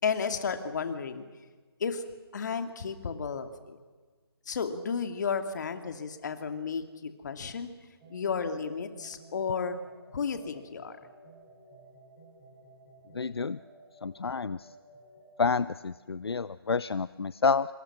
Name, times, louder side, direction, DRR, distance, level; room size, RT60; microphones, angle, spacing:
voice 1, 0.0-1.3 1.8-2.0 2.3-3.8 4.5-7.7 8.1-9.8 10.1-11.0, left 6 dB, 45° left, 8 dB, 2.5 m, -33 dB
sound 1, 8.0-15.4, right 2 dB, 20° right, 4.6 m, -54 dB
voice 2, 13.1-13.6 14.0-14.7 15.4-17.7, left 5 dB, 75° left, 17 dB, 0.6 m, -29 dB
26.0 x 26.0 x 6.1 m, 1.4 s
figure-of-eight pair, 155°, 13 cm